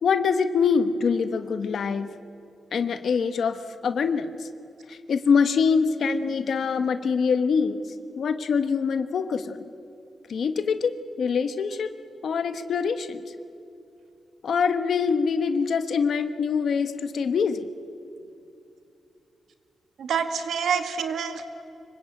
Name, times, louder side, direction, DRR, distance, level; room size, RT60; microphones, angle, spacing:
voice 1, 0.0-2.1 2.7-4.5 4.9-7.8 8.2-9.7 10.3-11.9 12.2-13.2 14.4-17.7, left 5 dB, 60° left, 9 dB, 1.2 m, -24 dB
voice 2, 20.0-21.7, right 6 dB, 85° right, 7 dB, 2.1 m, -27 dB
25.5 x 23.5 x 8.8 m, 2.7 s
wide cardioid pair, 145°, 0 cm